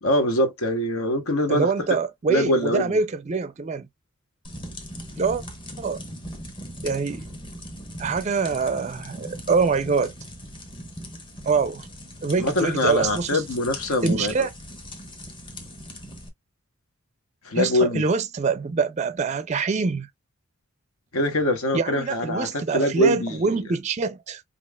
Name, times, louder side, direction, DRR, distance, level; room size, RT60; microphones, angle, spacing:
voice 1, 0.0-1.7 2.3-2.9 12.4-14.3 17.4-18.0 21.1-23.6, left 1 dB, 80° left, 1.1 m, -23 dB
voice 2, 1.5-3.9 5.2-5.4 5.8-6.0 6.8-7.3 8.0-10.1 11.4-11.9 12.2-13.4 14.0-14.5 17.5-20.1 21.7-24.4, right 4 dB, 30° right, 0.4 m, -24 dB
sound 1, 4.4-16.3, equal, 25° left, 0.9 m, -39 dB
5.3 x 2.4 x 2.3 m
head